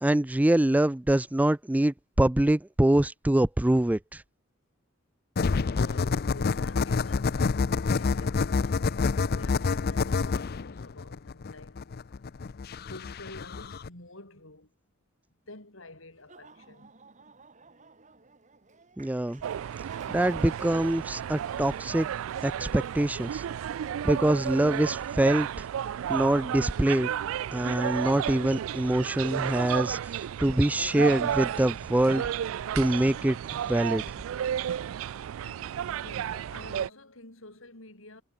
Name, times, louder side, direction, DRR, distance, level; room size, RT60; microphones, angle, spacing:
voice 1, 0.0-4.2 19.0-19.4 20.1-22.1 22.4-23.4 24.0-25.7 26.1-27.1 27.5-32.2 32.8-33.4 33.7-34.0, right 1 dB, 10° right, 0.4 m, -24 dB
sound 1, 5.4-13.9, left 4 dB, 50° left, 0.5 m, -28 dB
voice 2, 5.5-11.9 12.7-14.7 15.3-16.9 35.4-38.2, left 2 dB, 80° left, 7.5 m, -49 dB
Laughter / Applause, 16.1-24.6, right 5 dB, 40° right, 2.6 m, -56 dB
sound 2, 19.4-36.9, right 9 dB, 80° right, 0.3 m, -33 dB
head